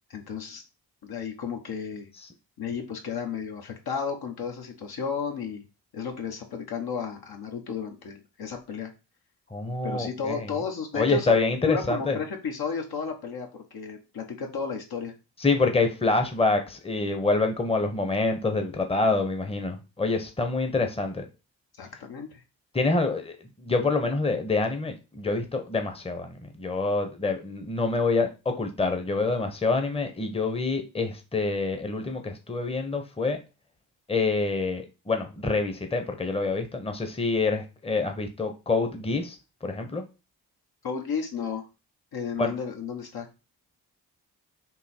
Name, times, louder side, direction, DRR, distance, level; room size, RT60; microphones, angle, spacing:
voice 1, 0.1-0.6 1.0-2.1 2.6-5.6 5.9-8.9 9.8-11.3 11.6-15.1 21.8-22.4 40.8-41.6 42.1-43.3, left 6 dB, 60° left, 3 dB, 1.2 m, -33 dB
voice 2, 9.5-10.6 10.9-12.2 15.4-21.2 22.7-33.4 34.1-39.4 39.6-40.0 42.4-42.5, left 3 dB, 15° left, 5 dB, 0.9 m, -26 dB
3.8 x 2.7 x 4.3 m, 0.29 s
hypercardioid pair, 45°, 43 cm